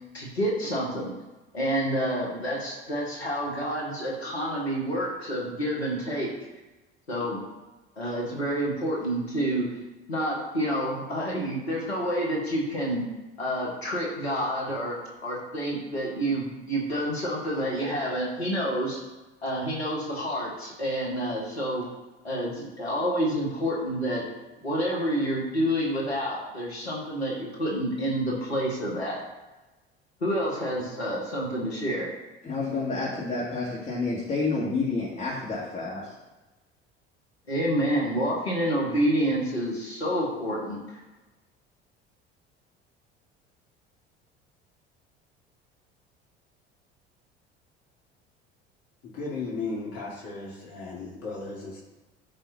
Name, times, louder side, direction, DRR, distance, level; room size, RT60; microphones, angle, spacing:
voice 1, 0.1-1.1 1.5-6.3 7.1-7.4 8.0-9.7 10.1-13.0 13.4-19.0 19.4-21.9 22.2-24.2 24.6-29.2 30.2-32.1 37.5-41.0, equal, 80° left, -3 dB, 1.9 m, -28 dB
voice 2, 32.4-36.1, left 3 dB, 25° left, -7 dB, 2.3 m, -29 dB
voice 3, 49.0-51.8, left 3 dB, 50° left, -5 dB, 2.2 m, -35 dB
14.0 x 5.4 x 2.9 m, 1.1 s
figure-of-eight pair, 60°, 31 cm